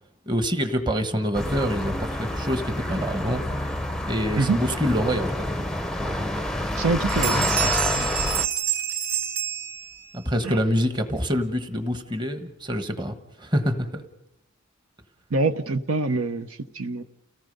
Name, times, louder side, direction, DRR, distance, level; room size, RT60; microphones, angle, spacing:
voice 1, 0.3-3.4 4.1-5.6 10.1-14.0, equal, 20° right, 8 dB, 1.3 m, -26 dB
sound 1, 1.3-8.5, left 1 dB, ahead, 0.7 m, -28 dB
Bell, 6.7-6.8 7.1-10.2, right 9 dB, 40° right, 3.3 m, -28 dB
voice 2, 6.8-8.1 10.4-10.6 15.3-17.0, right 3 dB, 75° right, 9 dB, 0.9 m, -26 dB
30.0 x 17.5 x 5.4 m, 0.85 s
head